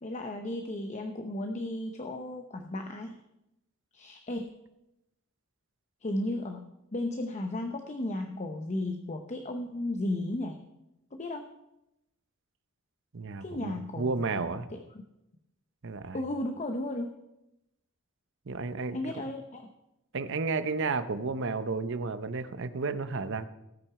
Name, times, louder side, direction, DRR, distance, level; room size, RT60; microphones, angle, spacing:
voice 1, 0.0-3.2 3.9-4.6 6.0-10.6 11.1-11.5 13.4-14.1 14.7-15.0 16.1-17.1 18.9-19.6, left 1 dB, 35° left, 5 dB, 0.7 m, -34 dB
voice 2, 13.1-14.7 15.8-16.2 18.5-19.0 20.1-23.4, right 4 dB, 60° right, 11 dB, 0.7 m, -32 dB
18.5 x 6.1 x 4.8 m, 0.89 s
head